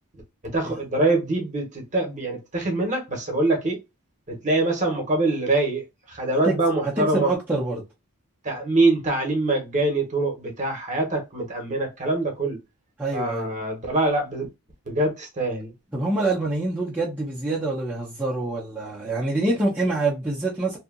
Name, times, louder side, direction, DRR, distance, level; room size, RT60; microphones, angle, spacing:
voice 1, 0.4-3.8 4.3-7.3 8.4-12.6 13.1-14.5 14.8-15.7, right 2 dB, 35° right, 1.0 m, -24 dB
voice 2, 7.0-7.8 13.0-13.5 15.9-20.8, right 2 dB, 10° right, 0.6 m, -25 dB
2.7 x 2.4 x 2.4 m
head